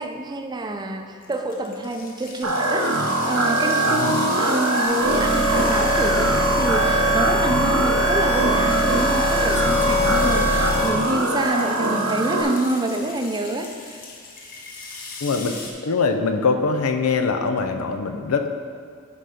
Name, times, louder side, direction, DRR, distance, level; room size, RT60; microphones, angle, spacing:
voice 1, 0.0-14.0, right 2 dB, 20° right, 5 dB, 0.5 m, -27 dB
sound 1, 1.2-15.7, left 3 dB, 40° left, 1.0 m, -38 dB
sound 2, 2.4-12.4, right 2 dB, 85° right, 0.9 m, -22 dB
voice 2, 3.8-4.2 15.2-15.6 15.8-18.5, left 4 dB, 90° left, 6 dB, 0.5 m, -23 dB
sound 3, 4.9-10.9, left 1 dB, 65° left, 1.1 m, -23 dB
10.0 x 4.0 x 4.9 m, 2.2 s
head